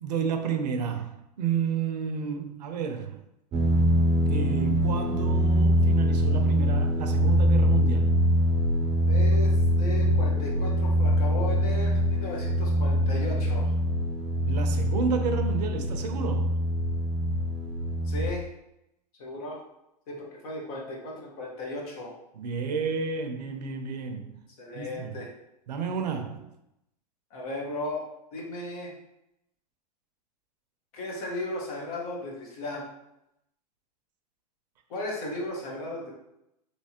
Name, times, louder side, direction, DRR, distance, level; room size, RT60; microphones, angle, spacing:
voice 1, 0.0-3.2 4.3-8.1 14.5-16.6 22.3-24.4 24.7-25.2 25.7-26.5, right 6 dB, 80° right, 0.6 m, -31 dB
sound 1, 3.5-18.3, equal, 30° right, 0.5 m, -24 dB
voice 2, 9.0-13.8 18.0-18.4 19.2-19.6 20.1-22.1 24.6-25.3 27.3-28.0 28.3-28.9 30.9-32.9 34.9-36.1, left 1 dB, 65° left, 1.2 m, -35 dB
3.3 x 3.0 x 2.9 m
hypercardioid pair, 105°, 21 cm